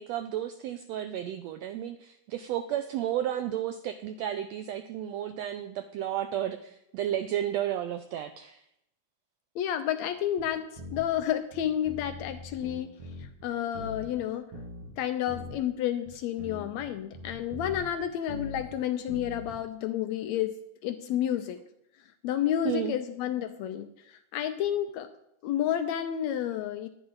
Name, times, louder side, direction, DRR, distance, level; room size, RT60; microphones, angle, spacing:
voice 1, 0.0-8.6 22.6-23.0, right 11 dB, 85° right, 9 dB, 1.5 m, -32 dB
voice 2, 9.6-10.6 10.9-12.9 13.2-14.5 15.0-20.5 20.8-21.6 22.2-25.1 25.4-26.9, left 10 dB, 75° left, 8 dB, 1.7 m, -30 dB
sound 1, 10.4-10.5 10.8-11.2 11.5-13.5 13.7-14.2 14.5-15.0 15.3-15.6 16.1-16.2 16.4-18.8 19.1-19.6, left 1 dB, 50° right, 2.6 m, -42 dB
10.5 x 10.5 x 3.9 m, 0.79 s
omnidirectional pair, 3.5 m